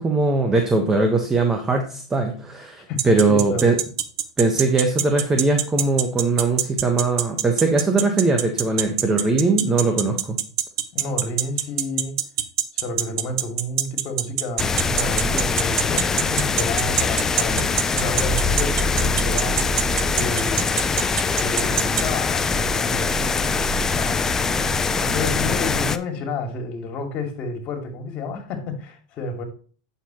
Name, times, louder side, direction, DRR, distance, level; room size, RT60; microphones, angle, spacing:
voice 1, 0.0-3.8 4.4-10.4, right 3 dB, 15° right, 1.3 m, -20 dB
voice 2, 2.9-3.7 10.9-12.2 12.7-19.6 20.1-20.7 21.4-23.1 23.9-24.3 25.0-29.4, left 2 dB, 40° left, 2.6 m, -30 dB
sound 1, 3.0-22.0, right 12 dB, 65° right, 1.0 m, -22 dB
sound 2, 14.6-26.0, left 4 dB, 15° left, 0.5 m, -23 dB
9.1 x 6.9 x 3.1 m
hypercardioid pair, 120°, 3 cm